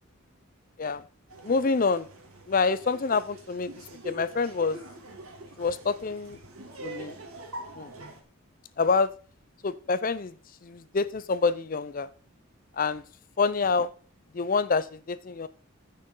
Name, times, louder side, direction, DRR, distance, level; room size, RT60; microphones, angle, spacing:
Laughter, 1.3-8.2, right 1 dB, 90° right, 2.5 m, -44 dB
voice 1, 1.4-2.1 2.5-3.7 4.0-4.8 5.6-6.4 6.8-7.2 7.8-7.9 8.8-9.1 9.6-10.3 10.6-12.1 12.8-13.0 13.4-13.9 14.3-15.5, left 4 dB, 40° left, 15 dB, 0.5 m, -26 dB
14.5 x 6.7 x 3.8 m, 0.40 s
head